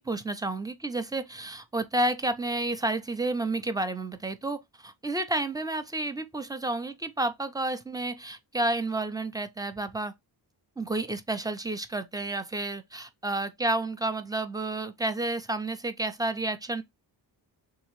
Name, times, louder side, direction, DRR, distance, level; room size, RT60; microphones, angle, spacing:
voice 1, 0.0-10.1 10.8-16.8, right 2 dB, 10° right, 0.5 m, -30 dB
3.6 x 3.0 x 3.0 m
cardioid pair, 105°, 46 cm